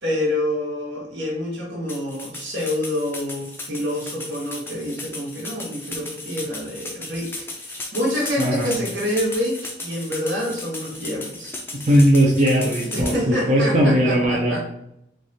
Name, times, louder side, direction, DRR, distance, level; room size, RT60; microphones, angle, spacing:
voice 1, 0.0-11.6 12.9-14.6, left 1 dB, 80° right, -3 dB, 1.4 m, -27 dB
sound 1, 1.9-13.2, left 2 dB, 10° left, 0.4 m, -35 dB
voice 2, 8.4-8.8 11.8-14.6, equal, 40° right, -4 dB, 0.6 m, -18 dB
3.3 x 2.4 x 4.0 m, 0.78 s
head